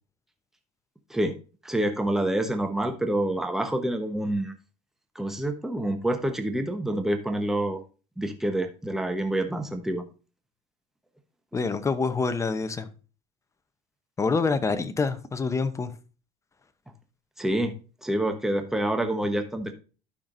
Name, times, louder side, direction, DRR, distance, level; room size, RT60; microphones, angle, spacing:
voice 1, 1.6-4.5 5.1-7.8 8.2-10.0 17.4-17.7 18.0-19.7, right 1 dB, 5° right, 1.0 m, -27 dB
voice 2, 11.5-12.9 14.2-15.9, left 4 dB, 20° left, 0.8 m, -26 dB
12.0 x 5.9 x 2.6 m
cardioid pair, 115°, 15 cm